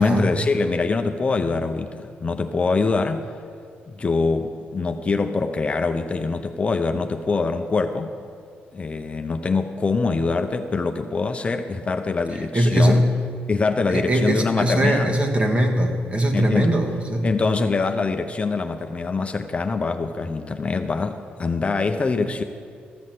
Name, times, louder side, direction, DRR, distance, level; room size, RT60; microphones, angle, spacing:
voice 1, 0.0-3.3 3.9-8.1 8.7-13.0 13.5-15.1 16.3-16.7 17.2-22.4, left 4 dB, 30° left, 6 dB, 0.7 m, -24 dB
voice 2, 12.5-13.1 13.9-17.3, right 1 dB, 30° right, 2 dB, 1.7 m, -20 dB
14.0 x 6.3 x 7.6 m, 2.3 s
cardioid pair, 85°, 4 cm